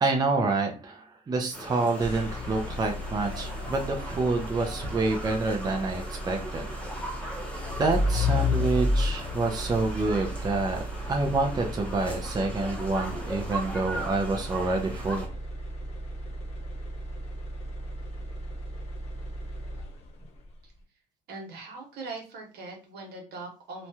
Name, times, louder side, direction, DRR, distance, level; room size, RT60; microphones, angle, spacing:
voice 1, 0.0-6.7 7.8-15.3, right 3 dB, 25° right, 2 dB, 0.5 m, -28 dB
sound 1, 1.5-15.3, right 1 dB, 5° left, 0.8 m, -39 dB
sound 2, 2.0-20.2, left 1 dB, 40° left, 0.9 m, -33 dB
voice 2, 21.3-23.9, right 3 dB, 70° right, 0 dB, 1.2 m, -41 dB
3.1 x 2.3 x 2.7 m, 0.34 s
cardioid pair, 110°, 17 cm